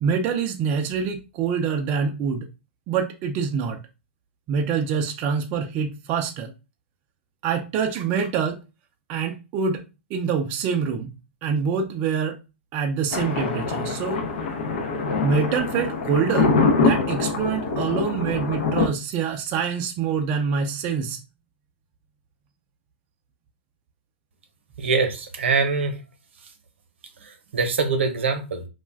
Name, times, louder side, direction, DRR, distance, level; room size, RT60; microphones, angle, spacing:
voice 1, 0.0-2.5 2.9-3.8 4.5-6.5 7.4-8.6 9.1-9.8 10.1-11.1 11.4-12.4 12.7-14.2 15.2-21.2, right 6 dB, 30° right, 0.4 m, -25 dB
Thunder, 13.1-18.9, left 4 dB, 65° left, 0.6 m, -24 dB
voice 2, 24.8-26.0 27.2-28.6, right 4 dB, 75° right, 0.8 m, -24 dB
2.4 x 2.2 x 3.3 m
hypercardioid pair, 135°, 6 cm